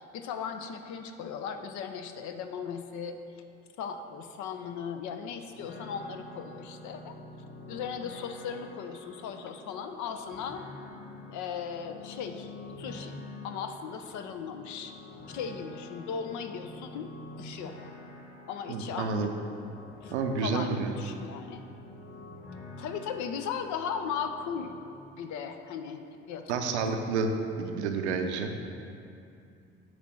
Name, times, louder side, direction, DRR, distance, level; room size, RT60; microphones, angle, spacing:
voice 1, 0.0-3.2 3.8-7.1 7.7-10.6 11.3-12.5 12.8-14.9 15.3-17.1 17.4-17.9 18.5-19.3 20.0-21.6 22.8-24.8 25.1-26.7, left 7 dB, 60° left, 7 dB, 0.7 m, -37 dB
sound 1, 5.5-24.7, left 2 dB, 40° left, 1.4 m, -47 dB
voice 2, 18.7-19.3 20.1-20.9 26.5-27.3 27.6-28.5, right 5 dB, 85° right, 5 dB, 0.7 m, -29 dB
9.1 x 3.2 x 6.2 m, 2.5 s
hypercardioid pair, 55°, 33 cm